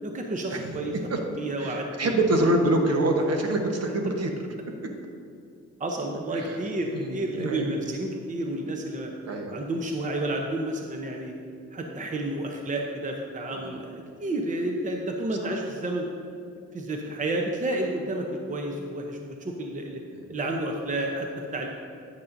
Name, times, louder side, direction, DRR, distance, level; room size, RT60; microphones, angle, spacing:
voice 1, 0.0-0.9 1.4-2.2 5.8-9.1 9.5-11.3 11.7-16.0 16.7-20.0 20.3-21.7, right 1 dB, 25° right, 2 dB, 0.8 m, -30 dB
voice 2, 1.6-4.3 6.3-6.6 6.9-7.7 8.6-8.7 9.2-9.6 13.5-13.8 15.4-15.6 20.1-20.2, right 1 dB, 55° right, 3 dB, 1.2 m, -26 dB
9.5 x 8.3 x 2.6 m, 2.4 s
cardioid pair, 90°, 30 cm